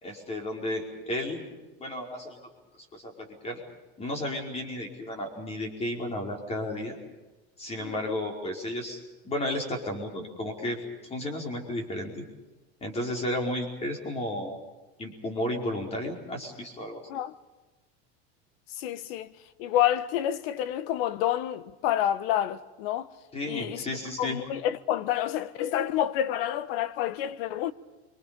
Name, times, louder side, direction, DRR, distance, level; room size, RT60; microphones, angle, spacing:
voice 1, 0.0-2.5 2.8-3.6 4.0-7.0 7.6-12.2 12.8-14.6 15.0-17.0 19.0-19.1 23.3-24.4, left 1 dB, 20° left, 4.9 m, -33 dB
voice 2, 18.8-19.3 19.6-23.1 23.5-23.8 24.2-27.7, left 11 dB, 65° left, 1.3 m, -28 dB
29.5 x 25.0 x 5.4 m
supercardioid pair, 155°, 32 cm